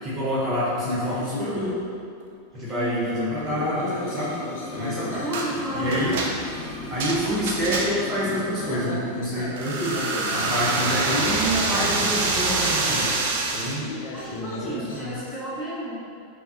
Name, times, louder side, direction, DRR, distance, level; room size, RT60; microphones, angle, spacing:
voice 1, 0.0-1.7 2.5-4.4 4.7-5.2 5.7-6.2 6.9-10.0 10.3-13.0 13.5-13.8 14.6-15.2, equal, 30° right, -8 dB, 1.0 m, -27 dB
sound 1, 0.8-1.8 2.4-2.6 3.3-6.6 6.9-7.0 7.3-7.4 7.7-8.0 8.2-10.9 11.4-11.5 11.7-12.5 12.9-15.0, left 3 dB, 65° left, 0.5 m, -35 dB
voice 2, 2.5-3.3 5.2-6.2 14.1-15.9, equal, 10° left, -10 dB, 1.4 m, -32 dB
Dragging a Cinderblock Across Concrete, 3.4-8.9 9.2-9.3, left 2 dB, 45° left, 1.0 m, -38 dB
sound 2, 5.3-5.5 5.9-8.2 9.6-13.8, right 3 dB, 60° right, 0.5 m, -26 dB
5.5 x 2.1 x 2.8 m, 2.5 s
hypercardioid pair, 90°, 0 cm